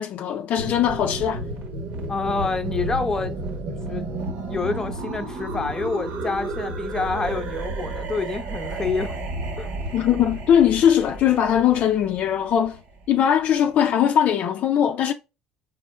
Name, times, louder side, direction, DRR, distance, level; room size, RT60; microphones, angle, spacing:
voice 1, 0.0-1.4 9.9-12.8 13.1-15.1, left 9 dB, 55° left, 0.5 m, -20 dB
sound 1, 0.5-13.3, right 2 dB, 60° right, 1.3 m, -32 dB
voice 2, 2.1-3.4 3.9-4.0 4.5-9.2 9.6-9.7, left 4 dB, 20° left, 0.8 m, -27 dB
4.2 x 3.7 x 2.2 m
supercardioid pair, 95°, 3 cm